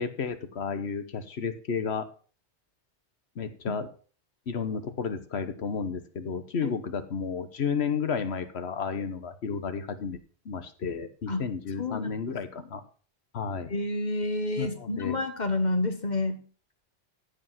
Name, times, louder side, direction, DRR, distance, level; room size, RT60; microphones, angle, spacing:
voice 1, 0.0-2.1 3.4-3.9 4.5-10.2 10.4-12.8 13.3-13.7 14.6-15.2, left 6 dB, 75° left, 10 dB, 1.4 m, -32 dB
voice 2, 11.8-12.1 13.7-16.4, left 2 dB, 40° left, 7 dB, 1.6 m, -29 dB
14.5 x 5.2 x 5.8 m, 0.40 s
omnidirectional pair, 1.1 m